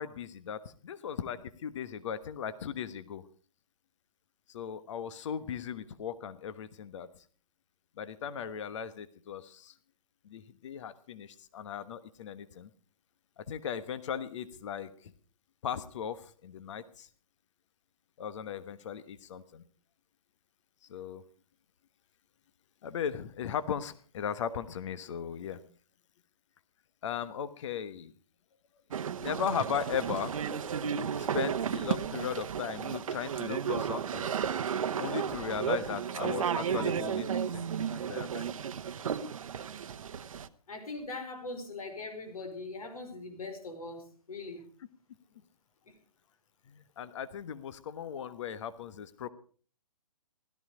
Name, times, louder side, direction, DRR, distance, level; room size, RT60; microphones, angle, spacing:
voice 1, 0.0-3.2 4.5-7.1 8.0-9.7 10.2-12.7 13.4-15.1 15.6-17.1 18.2-19.6 20.9-21.2 22.8-25.6 27.0-28.1 29.2-30.3 31.1-34.3 35.0-38.5 46.7-49.3, left 8 dB, 50° left, 13 dB, 1.2 m, -37 dB
sound 1, 28.9-40.5, right 7 dB, 60° right, 1.0 m, -33 dB
voice 2, 40.7-44.6 45.9-46.0, left 3 dB, 70° left, 6 dB, 4.9 m, -41 dB
16.0 x 13.5 x 4.9 m, 0.43 s
hypercardioid pair, 135°, 19 cm